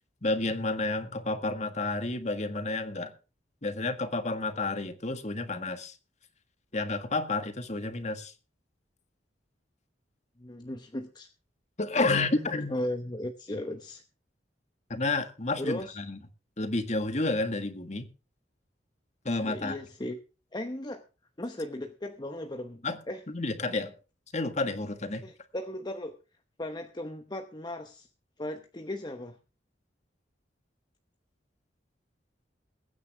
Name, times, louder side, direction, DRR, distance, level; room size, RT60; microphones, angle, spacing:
voice 1, 0.2-3.1 3.6-5.9 6.7-8.3 11.8-12.7 14.9-16.2 16.6-18.1 19.2-19.8 22.8-23.0 23.3-23.9 24.3-25.2, left 2 dB, 40° left, 1.7 m, -30 dB
voice 2, 10.4-11.3 12.1-14.0 15.6-15.9 19.4-20.2 20.5-21.0 21.4-23.2 25.2-26.2 26.6-28.1 28.4-29.4, left 1 dB, 25° left, 0.9 m, -36 dB
22.0 x 9.5 x 3.5 m
head